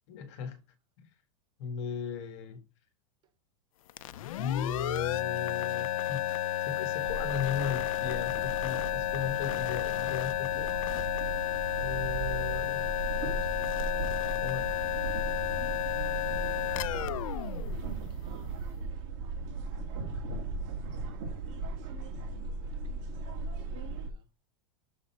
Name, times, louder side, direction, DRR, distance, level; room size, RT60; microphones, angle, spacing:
voice 1, 0.1-0.6 1.6-2.6 4.4-6.4 6.6-11.1 11.8-12.9 14.4-14.7, left 7 dB, 55° left, 1.5 m, -37 dB
sound 1, 3.9-18.5, left 14 dB, 90° left, 0.5 m, -32 dB
sound 2, 7.0-24.1, right 4 dB, 50° right, 1.9 m, -37 dB
voice 2, 12.8-14.1 16.4-19.1 20.8-24.3, right 7 dB, 25° right, 0.7 m, -60 dB
6.9 x 4.0 x 4.3 m
supercardioid pair, 155°, 17 cm